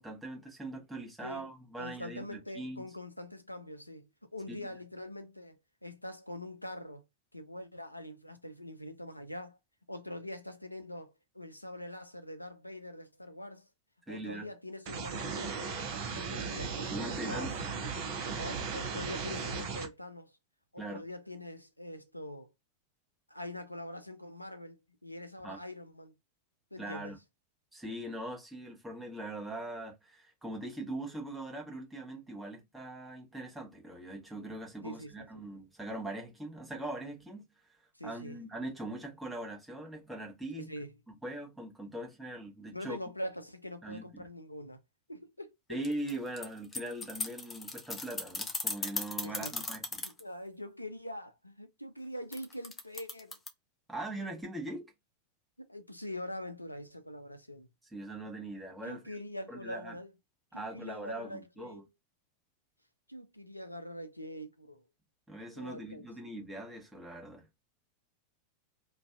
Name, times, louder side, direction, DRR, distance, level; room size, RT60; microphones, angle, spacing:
voice 1, 0.0-2.8 4.5-4.7 14.0-14.5 16.9-17.5 20.8-21.0 25.4-25.6 26.8-27.2 27.7-40.7 41.2-43.0 43.8-44.3 45.7-50.0 53.9-54.9 57.9-59.2 59.5-60.0 60.5-61.8 65.3-67.5, right 1 dB, 5° right, 1.0 m, -41 dB
voice 2, 1.8-7.0 7.3-9.6 9.9-13.6 14.1-15.7 16.1-17.5 18.3-20.3 20.7-22.5 23.3-26.1 26.7-27.1 34.8-35.3 37.9-38.4 40.5-40.9 42.7-44.8 45.1-45.8 49.2-49.6 50.0-53.4 55.6-57.7 58.8-60.1 60.5-61.9 63.1-64.8 65.5-66.1, left 1 dB, 85° left, 0.4 m, -44 dB
sound 1, 14.9-19.9, right 5 dB, 50° right, 0.7 m, -36 dB
sound 2, 45.8-50.2 52.3-53.5, left 3 dB, 15° left, 0.6 m, -37 dB
2.6 x 2.2 x 2.3 m
figure-of-eight pair, 90°, 0 cm